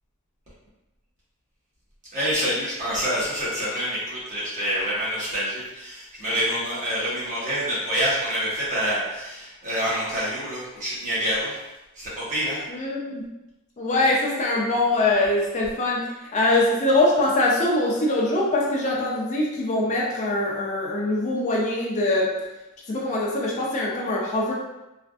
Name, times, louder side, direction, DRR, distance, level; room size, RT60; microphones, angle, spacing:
voice 1, 2.1-11.6 11.9-12.6, equal, 35° right, -8 dB, 1.2 m, -27 dB
voice 2, 12.7-13.2 13.8-22.3 22.9-24.6, left 2 dB, 35° left, -3 dB, 0.5 m, -23 dB
3.4 x 2.4 x 2.4 m, 0.98 s
head